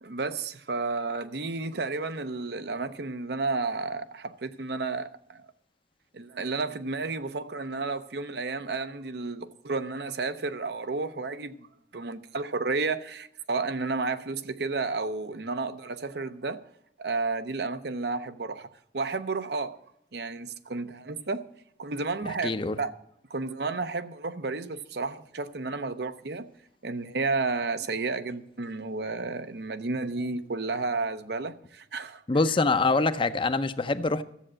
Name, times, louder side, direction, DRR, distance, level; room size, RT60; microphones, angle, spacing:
voice 1, 0.0-5.5 6.1-11.6 11.9-16.6 17.0-19.8 20.1-21.5 21.8-22.5 22.8-22.9 23.3-26.5 26.8-32.2, right 3 dB, 65° right, 0.7 m, -32 dB
voice 2, 22.2-22.8 32.3-34.2, left 3 dB, 30° left, 0.6 m, -25 dB
13.0 x 7.7 x 7.5 m
head